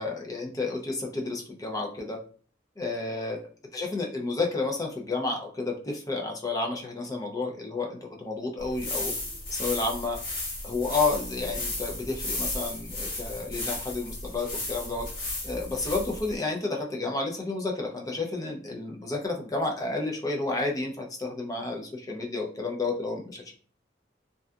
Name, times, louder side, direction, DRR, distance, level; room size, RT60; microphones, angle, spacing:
voice 1, 0.0-2.2 2.8-9.1 9.5-10.2 10.6-15.1 15.4-23.6, left 3 dB, 20° left, 1 dB, 0.5 m, -31 dB
sound 1, 8.6-16.4, left 2 dB, 50° left, 1.3 m, -34 dB
2.6 x 2.3 x 2.3 m, 0.43 s
head